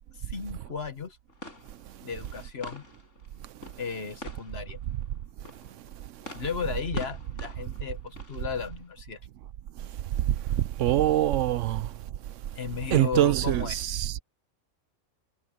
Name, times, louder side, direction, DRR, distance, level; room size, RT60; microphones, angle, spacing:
voice 1, 0.2-1.2 2.0-2.8 3.8-4.8 6.3-9.2 12.5-14.1, left 6 dB, 55° left, 1.5 m, -35 dB
sound 1, 1.3-9.0, left 1 dB, 80° left, 5.2 m, -45 dB
voice 2, 10.8-11.8 12.9-14.1, right 13 dB, 80° right, 0.9 m, -23 dB
omnidirectional pair, 1.3 m